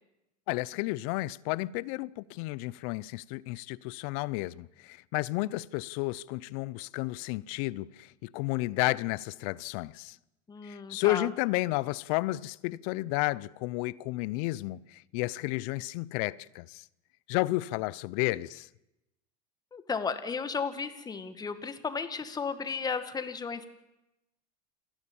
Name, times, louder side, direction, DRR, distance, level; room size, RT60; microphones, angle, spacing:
voice 1, 0.5-10.2 10.6-16.8 17.3-18.7, left 20 dB, 65° left, 0.7 m, -32 dB
voice 2, 10.5-11.3 19.7-23.7, left 5 dB, 20° left, 1.9 m, -34 dB
28.5 x 11.5 x 8.8 m
supercardioid pair, 110°, 20 cm